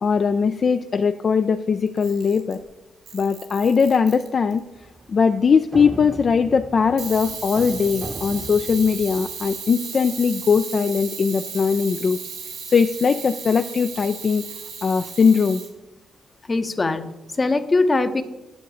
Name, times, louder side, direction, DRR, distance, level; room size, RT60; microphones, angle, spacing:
voice 1, 0.0-2.6 3.1-4.6 5.1-12.2 12.7-14.4 14.8-15.6, left 5 dB, 45° left, 8 dB, 0.4 m, -20 dB
Camera, 1.9-2.6 3.1-4.6 7.0-15.7, right 6 dB, 90° right, 1.9 m, -35 dB
sound 1, 4.8-9.6, right 2 dB, 25° right, 0.8 m, -38 dB
voice 2, 16.5-18.2, left 3 dB, 30° left, 10 dB, 0.8 m, -21 dB
9.3 x 6.5 x 4.9 m, 0.99 s
cardioid pair, 85°, 0 cm